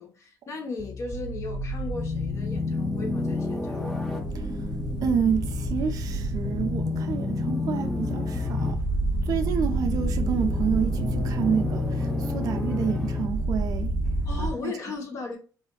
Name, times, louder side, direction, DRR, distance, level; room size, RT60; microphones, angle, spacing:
voice 1, 0.0-3.8 14.2-15.4, left 3 dB, 45° left, 0.9 m, -36 dB
sound 1, 0.8-14.5, left 1 dB, 5° left, 0.6 m, -28 dB
voice 2, 5.0-8.8 9.2-13.9 14.4-14.7, right 7 dB, 55° right, 0.4 m, -29 dB
3.5 x 2.4 x 2.3 m
cardioid pair, 140°, 7 cm